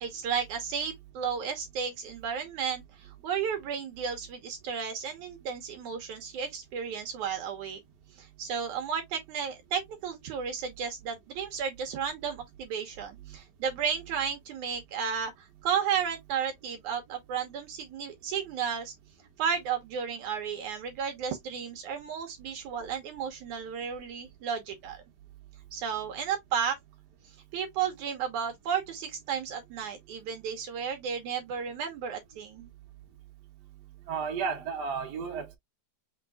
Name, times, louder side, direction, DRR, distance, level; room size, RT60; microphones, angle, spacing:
voice 1, 0.0-7.8 8.1-18.9 19.4-25.0 25.7-26.8 27.5-32.7, right 7 dB, 70° right, 2.2 m, -33 dB
voice 2, 34.1-35.6, right 6 dB, 40° right, 1.6 m, -33 dB
6.2 x 3.7 x 2.2 m
omnidirectional pair, 4.0 m